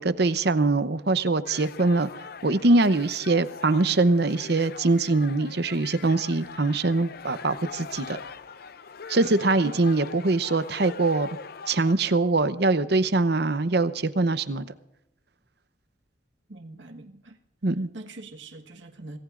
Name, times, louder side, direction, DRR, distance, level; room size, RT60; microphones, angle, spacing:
voice 1, 0.0-2.1 2.4-8.2 9.1-11.3 11.7-14.7 17.6-17.9, right 3 dB, 55° right, 13 dB, 0.8 m, -23 dB
sound 1, 1.5-11.9, left 5 dB, 50° left, 0.5 m, -42 dB
voice 2, 16.5-17.4 17.9-19.2, right 2 dB, 75° right, 4 dB, 1.5 m, -42 dB
26.5 x 18.5 x 2.5 m, 0.88 s
head